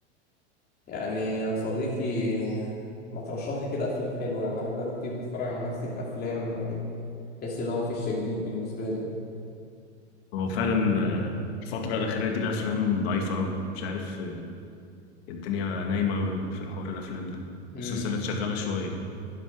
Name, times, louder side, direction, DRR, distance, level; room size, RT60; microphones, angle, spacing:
voice 1, 0.9-6.8 7.4-9.1 17.7-18.1, left 1 dB, 30° left, -5 dB, 2.9 m, -31 dB
voice 2, 10.3-11.4 11.6-14.5 15.3-17.4 17.8-19.0, left 4 dB, 60° left, 3 dB, 2.1 m, -29 dB
11.5 x 10.0 x 6.2 m, 2.4 s
hypercardioid pair, 105°, 35 cm